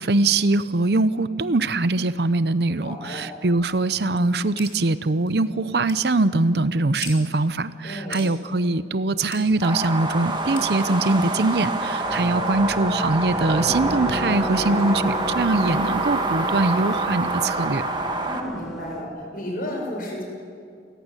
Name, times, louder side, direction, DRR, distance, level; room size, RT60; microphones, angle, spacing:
voice 1, 0.0-17.8, right 2 dB, 65° right, 14 dB, 0.7 m, -22 dB
voice 2, 2.8-3.2 7.8-8.2 14.5-15.0 18.2-20.2, left 1 dB, 55° left, 0 dB, 7.5 m, -33 dB
sound 1, 4.6-4.7 5.3-5.4 5.9-6.1 7.0-7.2 8.1-8.3 9.3-9.4 10.6-10.7, left 7 dB, 85° left, 5.4 m, -37 dB
sound 2, 9.6-18.4, right 2 dB, 25° right, 2.0 m, -27 dB
sound 3, 12.0-19.0, equal, ahead, 3.1 m, -32 dB
27.5 x 15.5 x 9.9 m, 2.3 s
head